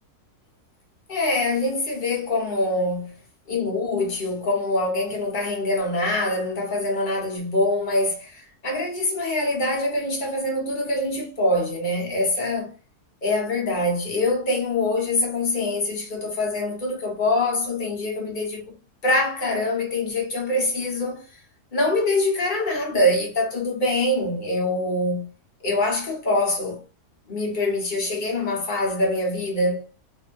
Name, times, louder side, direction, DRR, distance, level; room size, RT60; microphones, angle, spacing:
voice 1, 1.1-3.2 3.5-12.7 13.2-18.6 19.0-21.2 21.7-25.3 25.6-26.8 27.3-29.8, left 2 dB, 40° left, 0.8 m, -24 dB
2.6 x 2.6 x 2.4 m
omnidirectional pair, 1.7 m